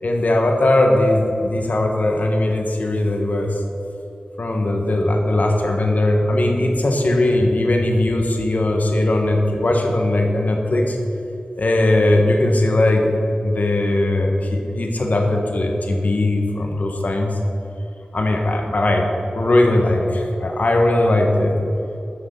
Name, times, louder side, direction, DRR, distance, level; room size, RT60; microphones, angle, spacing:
voice 1, 0.0-3.6 4.4-11.0 11.6-17.3 18.1-19.1 19.3-21.6, left 1 dB, 60° left, 2 dB, 1.2 m, -19 dB
9.5 x 6.2 x 6.7 m, 2.8 s
wide cardioid pair, 85°, 3 cm